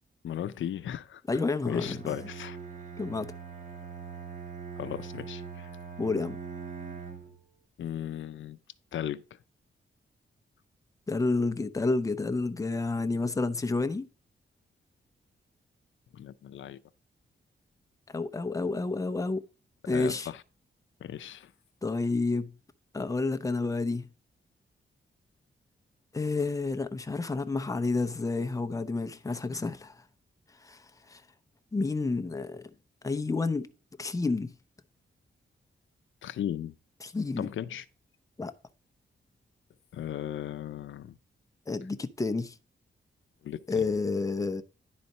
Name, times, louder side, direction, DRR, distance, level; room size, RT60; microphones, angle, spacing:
voice 1, 0.2-1.2 1.7-2.6 4.8-5.7 7.8-8.6 8.9-9.2 16.1-16.8 19.9-20.4 21.0-21.5 36.2-36.7 37.4-37.8 39.9-41.2 43.4-43.9, left 10 dB, 85° left, 0.5 m, -36 dB
voice 2, 1.3-2.1 3.0-3.3 6.0-6.4 11.1-14.1 18.1-19.4 19.9-20.3 21.8-22.6 22.9-24.1 26.1-30.0 30.6-31.2 31.7-32.7 33.0-33.7 34.0-34.5 37.0-37.5 38.4-38.5 41.7-42.5 43.7-44.6, left 3 dB, 15° left, 0.7 m, -30 dB
Bowed string instrument, 1.7-7.4, right 6 dB, 40° right, 1.8 m, -42 dB
10.5 x 4.2 x 5.3 m
wide cardioid pair, 110°, 19 cm